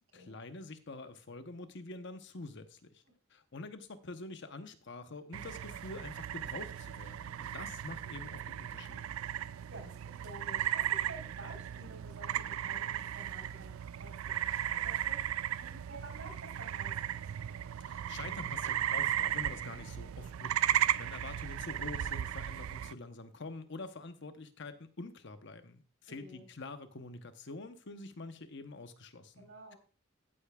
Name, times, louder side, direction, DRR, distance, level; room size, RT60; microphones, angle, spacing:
voice 1, 0.0-3.0 3.3-9.0 17.8-29.7, left 3 dB, 60° left, 9 dB, 0.9 m, -46 dB
sound 1, 5.3-22.9, right 11 dB, 85° right, 0.3 m, -36 dB
voice 2, 9.7-13.7 14.0-17.2 26.1-26.5 29.4-29.8, right 1 dB, 70° right, 0 dB, 4.2 m, -51 dB
14.0 x 8.3 x 2.3 m, 0.40 s
head